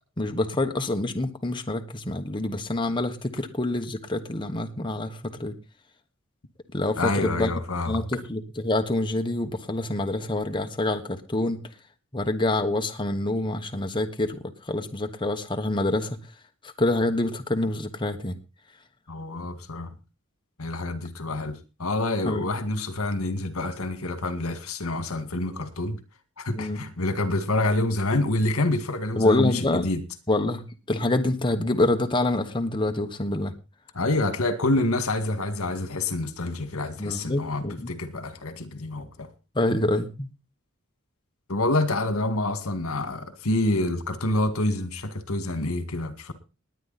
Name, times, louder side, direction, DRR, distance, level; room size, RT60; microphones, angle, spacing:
voice 1, 0.2-5.6 6.7-7.5 7.9-11.6 12.1-16.2 16.6-18.4 22.3-22.4 26.5-26.8 29.2-29.9 30.3-30.6 30.9-33.5 37.0-37.9 39.5-40.3, left 2 dB, 25° left, 1.2 m, -26 dB
voice 2, 7.0-8.0 19.1-19.9 20.6-26.0 26.4-30.0 33.9-39.3 41.5-46.3, left 2 dB, 80° left, 2.0 m, -27 dB
20.0 x 9.4 x 4.2 m
head